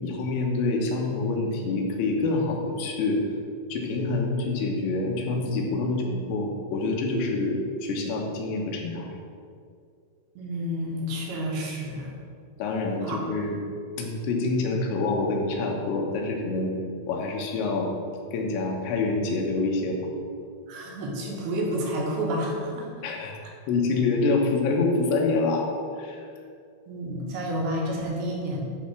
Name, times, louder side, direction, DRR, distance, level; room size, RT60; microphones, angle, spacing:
voice 1, 0.0-3.2 3.7-9.1 12.6-13.6 14.0-16.7 17.1-17.9 18.3-20.0 23.0-23.3 23.7-25.7 26.0-26.2, left 3 dB, 85° left, 0 dB, 3.4 m, -26 dB
voice 2, 10.4-12.1 13.0-13.2 20.7-22.9 26.9-28.6, equal, 70° right, -2 dB, 3.3 m, -30 dB
11.5 x 4.2 x 6.0 m, 2.3 s
omnidirectional pair, 5.0 m